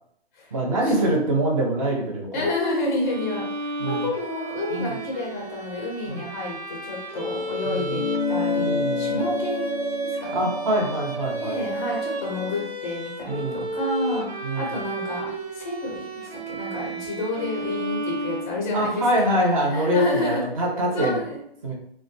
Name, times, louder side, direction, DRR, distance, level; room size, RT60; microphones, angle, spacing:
voice 1, 0.5-2.4 3.8-4.0 4.7-4.9 6.0-6.2 7.6-8.0 8.6-9.2 10.3-11.6 13.3-13.7 14.4-14.7 18.7-21.2 21.6-21.7, right 1 dB, 35° right, -1 dB, 0.6 m, -24 dB
voice 2, 2.3-10.4 11.3-19.1 19.7-20.6 20.9-21.4, left 2 dB, 20° left, -3 dB, 0.4 m, -30 dB
Bowed string instrument, 3.0-19.0, right 2 dB, 90° right, 0.7 m, -33 dB
sound 1, 7.9-12.7, left 4 dB, 90° left, 0.5 m, -29 dB
2.4 x 2.2 x 2.6 m, 0.70 s
hypercardioid pair, 160°, 31 cm